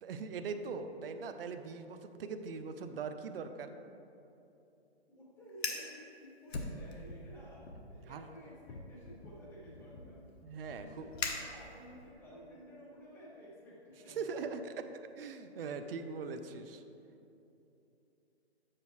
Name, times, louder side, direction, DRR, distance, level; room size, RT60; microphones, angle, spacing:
voice 1, 0.0-3.7 8.1-8.3 10.4-11.1 14.2-14.6 15.2-16.8, right 5 dB, 60° right, 8 dB, 0.6 m, -41 dB
voice 2, 5.1-10.2 10.7-14.5 15.5-15.8, equal, 5° left, -5 dB, 0.8 m, -53 dB
Fire, 5.5-5.9 6.5-7.3 7.6-8.0 8.7-12.0, left 4 dB, 65° left, 0.9 m, -41 dB
7.4 x 6.5 x 3.1 m, 2.9 s
hypercardioid pair, 155°, 33 cm